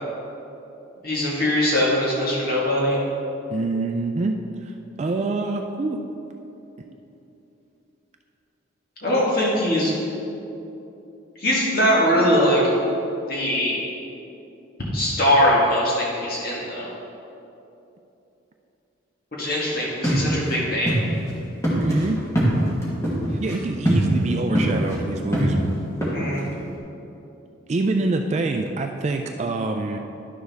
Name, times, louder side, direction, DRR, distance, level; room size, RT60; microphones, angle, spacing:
voice 1, 1.0-3.0 9.0-10.0 11.4-12.7 13.3-13.8 14.9-16.9 19.3-21.0 26.1-26.4, equal, 50° left, -5 dB, 1.6 m, -21 dB
voice 2, 3.5-4.7 5.0-6.0 21.8-22.2 23.3-25.6 27.7-30.0, right 3 dB, 35° right, 4 dB, 0.3 m, -25 dB
sound 1, 20.0-20.6 20.9-21.0 21.3-21.4 21.6-23.6 23.9-24.2 24.6-25.0 25.3-26.5, equal, 15° left, 1.5 m, -22 dB
11.0 x 6.5 x 3.4 m, 2.9 s
head